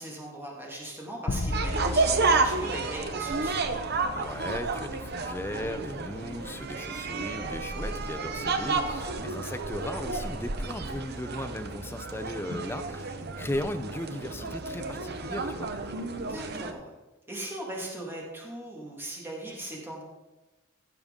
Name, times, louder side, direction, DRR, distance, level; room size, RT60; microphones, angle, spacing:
voice 1, 0.0-3.7 9.0-9.3 16.1-16.9 17.3-20.0, right 1 dB, 10° right, -3 dB, 2.1 m, -39 dB
sound 1, 1.3-3.9, left 2 dB, 60° left, 0.7 m, -34 dB
sound 2, 1.5-16.7, right 3 dB, 55° right, 0.8 m, -31 dB
voice 2, 4.1-15.7, left 1 dB, 10° left, 9 dB, 0.5 m, -37 dB
15.5 x 6.8 x 3.7 m, 1.1 s
head